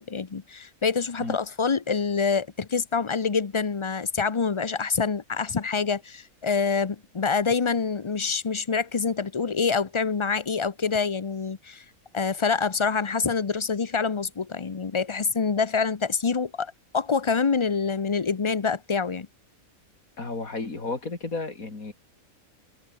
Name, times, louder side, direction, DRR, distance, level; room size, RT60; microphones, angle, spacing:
voice 1, 0.0-11.8 12.1-19.3, left 5 dB, 30° left, 0.6 m, -26 dB
voice 2, 20.2-21.9, left 3 dB, 80° left, 4.0 m, -32 dB
omnidirectional pair, 1.4 m